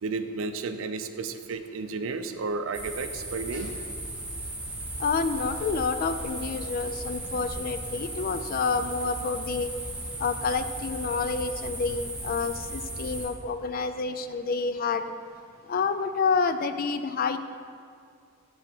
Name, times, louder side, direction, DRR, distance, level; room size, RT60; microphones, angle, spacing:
voice 1, 0.0-3.7, right 4 dB, 70° right, 9 dB, 0.5 m, -32 dB
sound 1, 2.7-13.3, right 1 dB, 5° right, 1.3 m, -36 dB
voice 2, 5.0-9.7 10.2-15.0 15.7-17.4, left 4 dB, 45° left, 10 dB, 0.3 m, -28 dB
9.7 x 3.4 x 6.0 m, 2.2 s
head